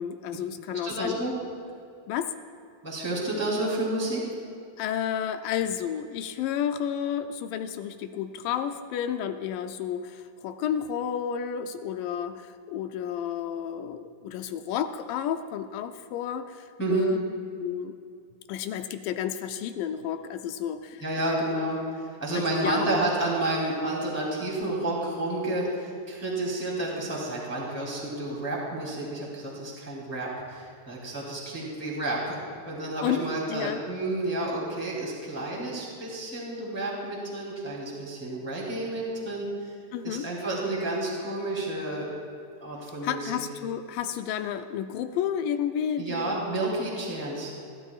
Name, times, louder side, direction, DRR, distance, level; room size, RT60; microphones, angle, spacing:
voice 1, 0.0-1.2 2.1-2.3 4.8-17.2 17.6-18.0 18.5-21.3 22.3-22.8 33.0-33.2 33.5-33.8 39.9-40.3 43.0-46.4, left 9 dB, 80° left, 8 dB, 2.2 m, -31 dB
voice 2, 0.7-1.3 2.8-4.3 16.8-17.2 21.0-32.4 32.6-39.7 40.0-42.1 42.6-43.4 46.0-47.5, right 2 dB, 5° left, -4 dB, 2.3 m, -30 dB
27.0 x 12.0 x 2.4 m, 2.4 s
omnidirectional pair, 3.9 m